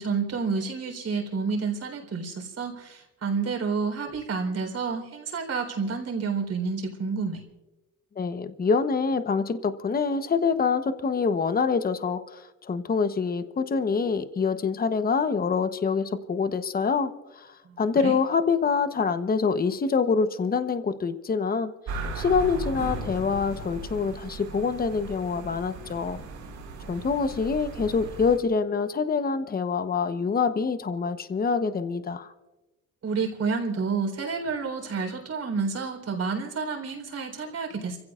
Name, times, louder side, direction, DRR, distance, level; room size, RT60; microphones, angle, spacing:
voice 1, 0.0-7.4 17.6-18.1 33.0-38.0, right 5 dB, 55° right, 3 dB, 3.9 m, -29 dB
voice 2, 8.2-21.7 22.1-26.2 26.9-32.3, left 5 dB, 30° left, 10 dB, 1.0 m, -26 dB
sound 1, 21.9-28.4, right 3 dB, 75° right, 5.0 m, -37 dB
30.0 x 16.0 x 2.5 m, 1.1 s
cardioid pair, 90°, 30 cm